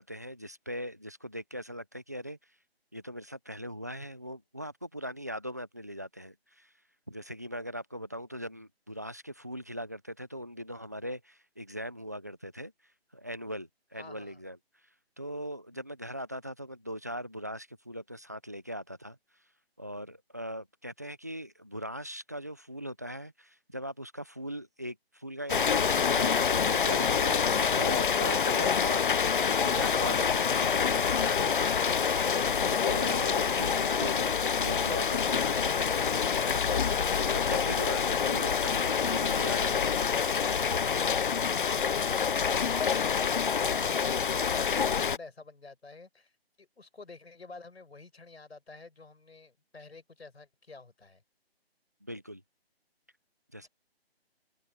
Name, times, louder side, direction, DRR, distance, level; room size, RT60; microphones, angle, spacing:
voice 1, 0.0-2.4 2.9-6.7 7.1-14.6 15.2-19.2 19.8-32.1 32.7-34.3 34.6-40.1 52.0-52.4 53.5-53.7, equal, 15° right, 0.5 m, -40 dB
voice 2, 14.0-14.4 41.8-46.3 46.6-51.2 53.6-53.7, left 3 dB, 85° left, 5.7 m, -50 dB
Rain, 25.5-45.2, left 6 dB, 55° left, 0.6 m, -27 dB
hypercardioid pair, 165°, 31 cm